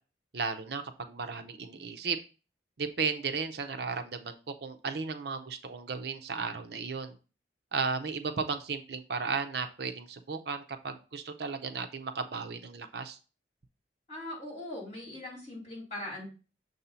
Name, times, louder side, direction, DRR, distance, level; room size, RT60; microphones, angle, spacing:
voice 1, 0.3-2.2 2.8-7.2 7.7-13.2, right 5 dB, 65° right, 9 dB, 0.6 m, -35 dB
voice 2, 14.1-16.3, left 1 dB, 35° left, -5 dB, 3.8 m, -40 dB
6.7 x 2.7 x 5.6 m, 0.33 s
head